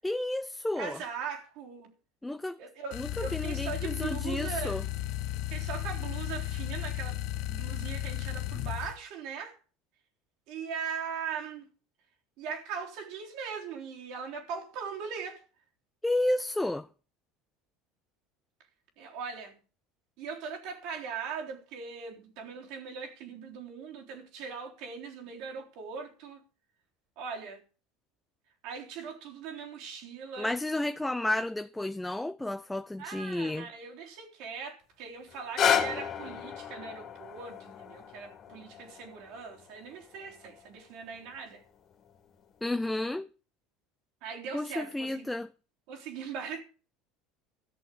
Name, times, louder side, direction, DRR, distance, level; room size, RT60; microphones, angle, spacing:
voice 1, 0.0-1.0 2.2-2.6 2.9-4.8 16.0-16.9 30.4-33.7 42.6-43.3 44.5-45.5, left 1 dB, 5° left, 0.5 m, -31 dB
voice 2, 0.8-1.9 2.6-4.8 5.5-7.2 7.5-9.6 10.5-11.7 12.4-15.4 19.0-19.6 20.2-26.4 27.2-27.6 28.6-30.5 33.0-41.6 44.2-45.3 45.9-46.6, right 6 dB, 70° right, 3.7 m, -40 dB
sound 1, 2.9-9.0, left 13 dB, 65° left, 0.9 m, -34 dB
sound 2, 35.3-41.4 42.1-42.2, left 8 dB, 45° left, 2.4 m, -33 dB
14.0 x 6.7 x 8.3 m
supercardioid pair, 100°, 0 cm